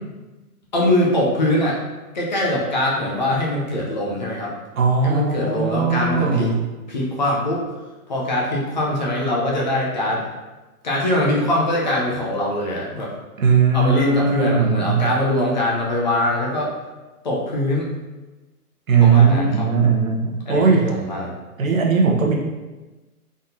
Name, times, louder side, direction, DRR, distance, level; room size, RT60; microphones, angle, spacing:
voice 1, 0.7-1.8 2.1-4.5 5.0-6.5 6.9-7.6 8.1-10.3 10.8-13.1 13.7-16.7 17.2-17.9 19.0-19.7 20.5-21.3, left 1 dB, 30° left, -4 dB, 0.6 m, -22 dB
voice 2, 4.8-6.6 13.4-15.1 18.9-20.9 21.6-22.4, right 5 dB, 60° right, -1 dB, 1.0 m, -18 dB
3.9 x 3.7 x 2.7 m, 1.2 s
hypercardioid pair, 150°, 46 cm